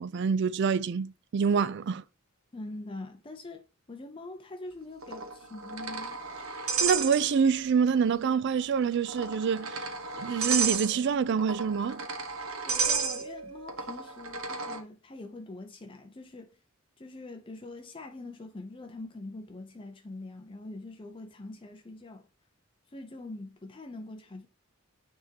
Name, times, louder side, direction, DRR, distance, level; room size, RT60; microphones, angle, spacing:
voice 1, 0.0-2.0 6.8-9.9 10.2-12.0, right 6 dB, 55° right, 0.3 m, -26 dB
voice 2, 2.5-6.2 12.6-16.6 17.0-22.3 22.9-24.5, left 2 dB, 25° left, 0.5 m, -44 dB
sound 1, 5.0-7.7 8.0-8.1 8.9-14.8, right 5 dB, 75° right, 1.1 m, -33 dB
9.3 x 3.6 x 2.8 m
head